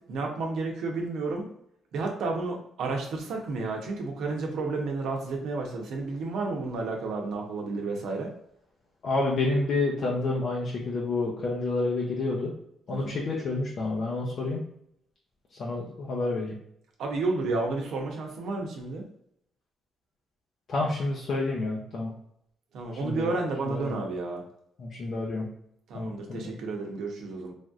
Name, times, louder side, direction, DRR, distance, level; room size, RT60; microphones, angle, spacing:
voice 1, 0.1-1.5 1.9-8.3 12.9-13.2 17.0-19.0 22.7-24.4 25.9-27.5, right 3 dB, 75° right, 1 dB, 0.7 m, -31 dB
voice 2, 9.0-12.5 12.9-14.6 15.6-16.5 20.7-22.1 23.0-23.3 23.7-24.0 24.8-25.5 25.9-26.4, left 2 dB, 60° left, -4 dB, 0.6 m, -29 dB
3.3 x 2.6 x 2.4 m, 0.73 s
cardioid pair, 90°, 0 cm